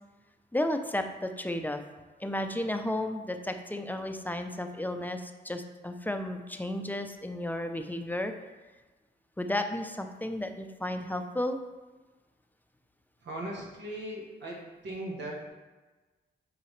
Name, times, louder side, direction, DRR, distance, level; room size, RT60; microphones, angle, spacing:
voice 1, 0.5-1.8 2.2-8.3 9.4-11.6, left 1 dB, 10° left, 6 dB, 0.6 m, -33 dB
voice 2, 13.2-15.5, right 1 dB, 80° right, -3 dB, 1.3 m, -38 dB
8.4 x 4.0 x 3.2 m, 1.2 s
cardioid pair, 70°, 18 cm